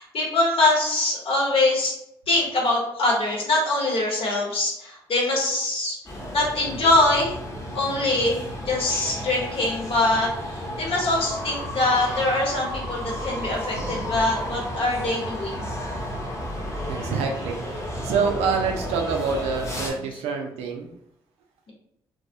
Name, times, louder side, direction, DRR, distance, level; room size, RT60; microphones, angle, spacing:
voice 1, 0.0-1.9 2.3-6.0 6.3-7.4 7.7-15.6, left 2 dB, 60° left, -2 dB, 0.9 m, -23 dB
sound 1, 6.0-19.9, equal, 25° left, 0.8 m, -33 dB
voice 2, 13.7-14.2 16.9-17.6 18.0-20.9, right 5 dB, 80° right, 3 dB, 0.4 m, -27 dB
2.2 x 2.1 x 2.7 m, 0.78 s
hypercardioid pair, 50°, 11 cm